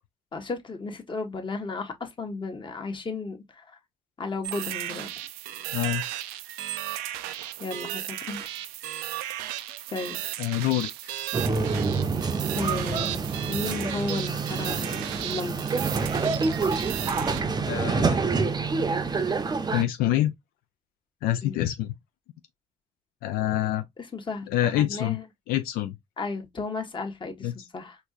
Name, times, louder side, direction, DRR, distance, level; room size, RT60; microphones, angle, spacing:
voice 1, 0.3-3.8 4.2-5.1 7.6-8.5 9.9-10.2 12.5-15.6 21.4-21.6 23.5-23.6 24.1-25.2 26.2-28.0, left 3 dB, 35° left, 1.2 m, -34 dB
sound 1, 4.4-17.4, right 14 dB, 90° right, 0.4 m, -35 dB
voice 2, 5.7-6.0 10.4-11.1 17.7-18.2 19.2-19.3 19.7-20.3 21.2-21.9 23.2-23.8 24.5-25.2 25.5-26.0 27.4-27.6, left 13 dB, 80° left, 0.4 m, -26 dB
sound 2, 11.3-19.8, right 4 dB, 30° right, 0.6 m, -27 dB
4.4 x 2.7 x 2.4 m
supercardioid pair, 70°, 15 cm